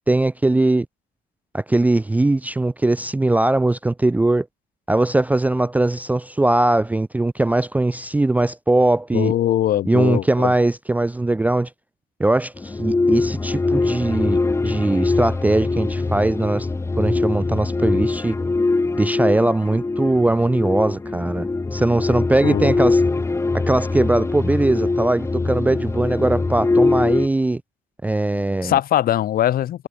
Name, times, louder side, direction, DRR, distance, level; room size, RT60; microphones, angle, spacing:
voice 1, 0.1-0.9 1.5-4.5 4.9-9.3 9.9-11.7 12.2-14.4 14.6-16.7 17.0-18.3 19.0-21.5 21.7-23.0 23.5-27.6 28.0-28.8, right 2 dB, 10° right, 0.5 m, -20 dB
voice 2, 9.1-10.5 22.4-22.8 28.6-29.9, left 12 dB, 60° left, 1.8 m, -21 dB
sound 1, 12.6-27.3, left 3 dB, 15° left, 1.5 m, -22 dB
cardioid pair, 110°, 17 cm